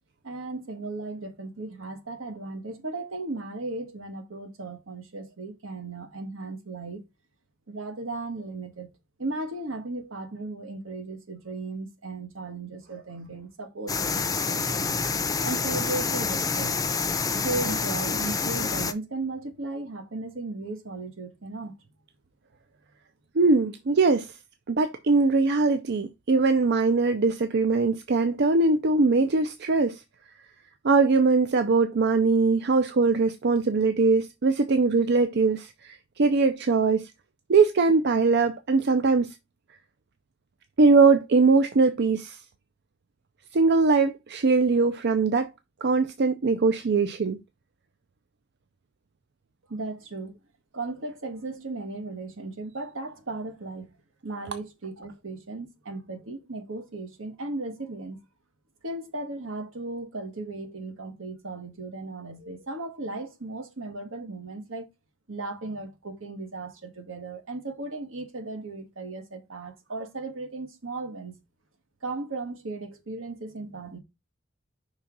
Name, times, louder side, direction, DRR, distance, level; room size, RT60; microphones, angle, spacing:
voice 1, 0.2-7.0 7.7-8.9 9.2-15.0 15.4-16.8 17.3-21.7 49.7-50.4 50.7-53.9 54.2-58.2 58.8-64.9 65.3-71.4 72.0-74.0, right 2 dB, 75° right, 1.3 m, -36 dB
sound 1, 13.9-18.9, left 4 dB, 20° left, 0.6 m, -27 dB
voice 2, 23.4-24.3 24.7-30.0 30.8-37.1 37.5-39.3 40.8-42.4 43.5-45.5 45.8-47.4, right 4 dB, 55° right, 0.5 m, -21 dB
5.6 x 3.6 x 5.9 m
head